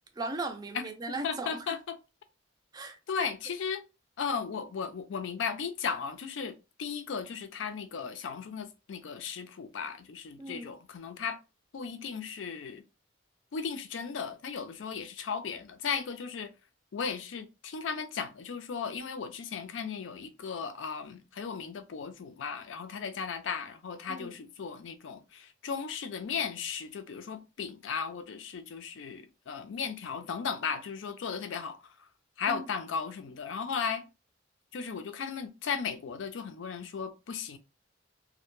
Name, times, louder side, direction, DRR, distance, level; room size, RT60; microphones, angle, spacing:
voice 1, 0.2-1.8 2.7-3.0 10.4-10.7 24.1-24.4 32.5-32.7, right 2 dB, 20° right, 0.4 m, -37 dB
voice 2, 1.2-2.0 3.1-3.8 4.2-11.4 11.7-12.8 13.5-16.5 16.9-32.1 32.4-34.1 34.7-37.6, left 6 dB, 90° left, 0.4 m, -36 dB
2.1 x 2.1 x 3.0 m
head